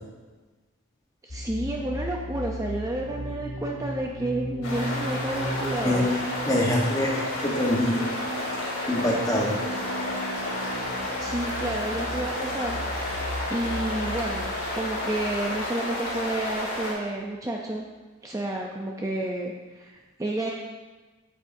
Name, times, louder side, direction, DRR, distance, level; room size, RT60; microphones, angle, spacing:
voice 1, 1.2-6.1 6.5-6.7 11.2-12.8 13.1-17.8 18.2-20.5, right 1 dB, 15° right, -1 dB, 0.4 m, -31 dB
sound 1, 1.3-16.8, equal, 45° left, 0.9 m, -37 dB
sound 2, 4.6-16.9, left 1 dB, 85° left, 2.7 m, -31 dB
voice 2, 6.5-8.0 8.9-9.6, left 1 dB, 15° left, -2 dB, 1.0 m, -24 dB
8.5 x 8.1 x 2.6 m, 1.3 s
head